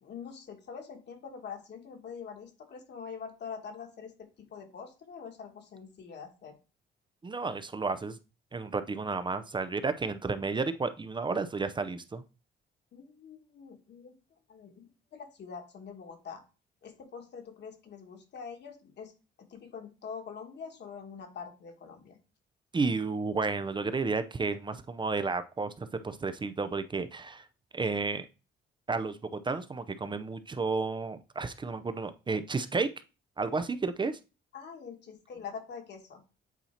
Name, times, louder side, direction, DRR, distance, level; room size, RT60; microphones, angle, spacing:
voice 1, 0.0-6.6 12.9-14.2 14.5-16.4 16.8-19.1 19.4-22.2 34.5-36.2, left 6 dB, 60° left, 4 dB, 1.5 m, -44 dB
voice 2, 7.2-8.2 8.5-12.2 22.7-27.4 27.7-28.3 28.9-32.9 33.4-34.2, right 4 dB, 25° right, 11 dB, 0.5 m, -32 dB
8.1 x 2.8 x 4.3 m, 0.32 s
cardioid pair, 90°, 20 cm